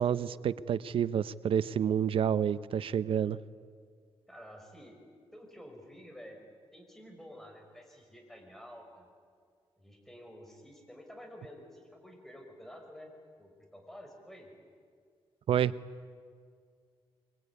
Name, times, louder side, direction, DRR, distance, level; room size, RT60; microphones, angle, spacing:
voice 1, 0.0-3.4 15.5-15.7, right 9 dB, 65° right, 16 dB, 0.6 m, -29 dB
voice 2, 4.3-5.0 5.3-6.4 6.7-9.1 9.8-13.1 13.4-14.5, equal, 5° left, 2 dB, 5.7 m, -50 dB
24.0 x 23.5 x 9.7 m, 2.1 s
cardioid pair, 120°, 10 cm